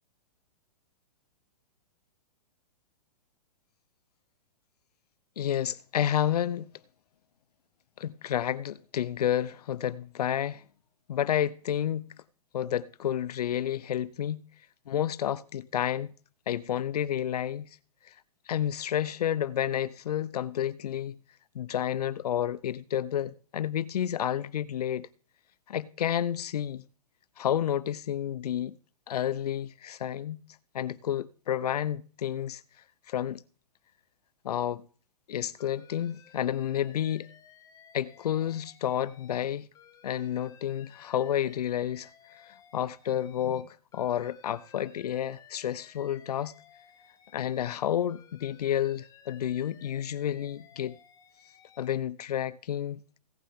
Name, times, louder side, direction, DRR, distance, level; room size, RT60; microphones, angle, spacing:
voice 1, 5.4-6.7 8.0-10.6 11.1-12.1 12.5-14.4 14.9-16.1 16.5-17.7 18.5-21.2 21.5-25.1 25.7-26.8 27.4-28.8 29.1-30.4 30.7-32.6 33.1-33.4 34.4-34.9 35.3-37.3 37.9-39.7 40.0-42.1 42.5-46.5 47.3-51.0 51.8-53.0, left 10 dB, 80° left, 0.7 m, -30 dB
Alarm, 35.6-39.5 39.7-43.6 43.9-47.8 48.1-52.0, left 8 dB, 15° left, 1.5 m, -57 dB
17.5 x 8.6 x 3.7 m
hypercardioid pair, 150°, 20 cm